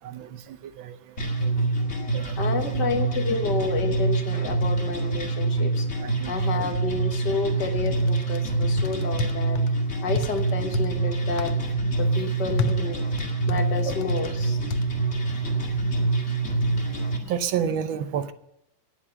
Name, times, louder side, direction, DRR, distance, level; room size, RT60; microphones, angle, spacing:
voice 1, 0.0-2.4 2.7-2.9 6.0-6.6 13.8-14.0 15.0-18.3, right 8 dB, 80° right, 12 dB, 1.6 m, -33 dB
sound 1, 1.2-17.2, right 3 dB, 35° left, 2.4 m, -26 dB
voice 2, 2.4-5.9 6.3-11.5 12.0-13.0 13.5-14.6, left 4 dB, 60° left, 6 dB, 2.0 m, -30 dB
sound 2, 7.8-8.4 8.8-9.7 10.2-10.9 11.4-11.5 12.6-14.3 14.7-14.8, left 3 dB, 80° left, 1.7 m, -29 dB
18.5 x 7.4 x 5.8 m, 0.83 s
omnidirectional pair, 2.1 m